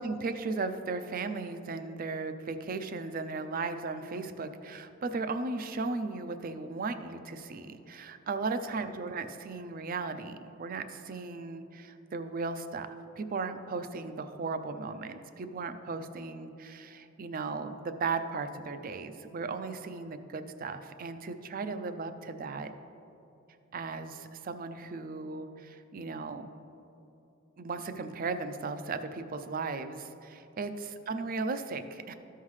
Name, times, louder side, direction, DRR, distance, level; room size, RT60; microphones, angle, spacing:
voice 1, 0.0-22.7 23.7-26.6 27.6-32.1, right 4 dB, 45° right, 10 dB, 0.4 m, -36 dB
13.5 x 5.6 x 3.2 m, 2.9 s
head